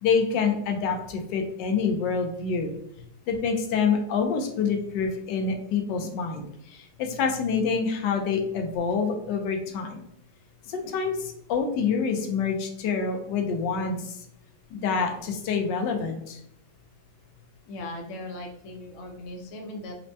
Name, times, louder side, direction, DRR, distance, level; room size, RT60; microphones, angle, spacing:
voice 1, 0.0-2.8 3.3-10.0 10.7-14.2 14.7-16.4, left 5 dB, 90° left, 4 dB, 1.3 m, -27 dB
voice 2, 17.7-20.0, left 1 dB, 65° left, 3 dB, 0.9 m, -38 dB
4.3 x 2.1 x 2.7 m, 0.73 s
omnidirectional pair, 1.8 m